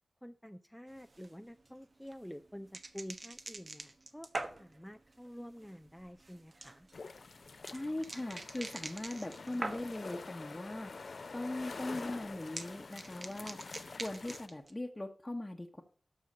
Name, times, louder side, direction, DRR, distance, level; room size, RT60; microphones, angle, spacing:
voice 1, 0.2-4.3 4.6-6.9, equal, 5° left, 8 dB, 0.5 m, -49 dB
sound 1, 0.9-10.2 10.5-11.1 11.3-14.7, right 2 dB, 50° right, 1.2 m, -46 dB
sound 2, 6.9-14.5, left 4 dB, 65° left, 0.6 m, -47 dB
voice 2, 7.7-10.9 11.3-13.6 14.0-15.8, left 1 dB, 20° left, 1 dB, 1.2 m, -40 dB
13.0 x 5.6 x 6.7 m, 0.44 s
wide cardioid pair, 65°, 0 cm